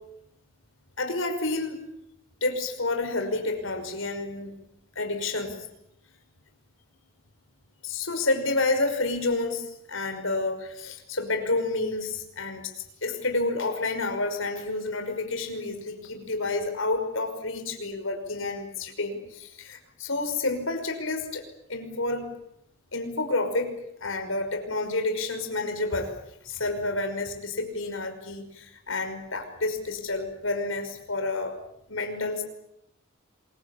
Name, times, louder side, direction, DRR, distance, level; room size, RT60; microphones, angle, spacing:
voice 1, 1.0-1.8 2.4-4.5 5.0-5.6 7.8-12.7 13.0-21.4 21.7-22.3 22.9-23.7 24.0-26.1 26.4-31.6 31.9-32.4, left 2 dB, 90° left, 6 dB, 5.7 m, -29 dB
27.0 x 23.5 x 8.6 m, 0.78 s
head